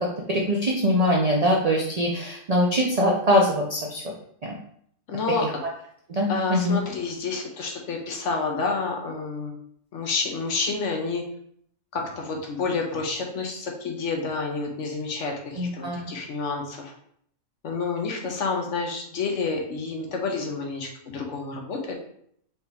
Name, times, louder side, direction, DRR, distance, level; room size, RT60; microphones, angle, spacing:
voice 1, 0.3-4.0 4.4-4.5 6.1-6.8 15.6-16.0, equal, 70° right, -1 dB, 0.3 m, -22 dB
voice 2, 5.1-5.6 6.3-9.5 9.9-11.2 11.9-16.9 17.6-21.9, left 4 dB, 60° left, 2 dB, 1.0 m, -29 dB
4.5 x 2.8 x 3.4 m, 0.67 s
omnidirectional pair, 1.5 m